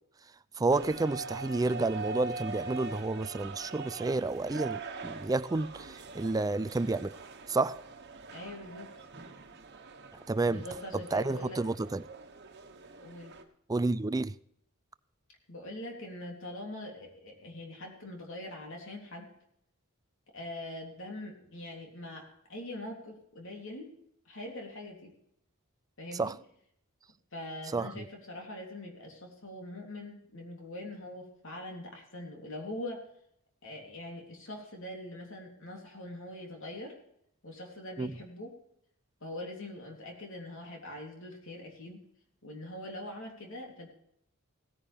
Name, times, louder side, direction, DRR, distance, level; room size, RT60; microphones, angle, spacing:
voice 1, 0.6-7.2 7.5-7.8 10.3-10.6 11.1-12.0 13.7-14.3 26.2-26.3 27.7-28.0 38.0-38.1, right 3 dB, 15° right, 0.4 m, -30 dB
sound 1, 0.7-13.4, right 4 dB, 50° right, 1.3 m, -43 dB
voice 2, 8.3-8.9 10.5-11.6 13.0-13.3 15.5-19.3 20.3-23.9 24.2-25.1 26.0-26.3 27.3-33.0 33.6-37.0 37.4-38.5 39.2-42.0 42.4-43.9, left 1 dB, 65° left, 3.4 m, -43 dB
17.5 x 10.0 x 3.5 m
head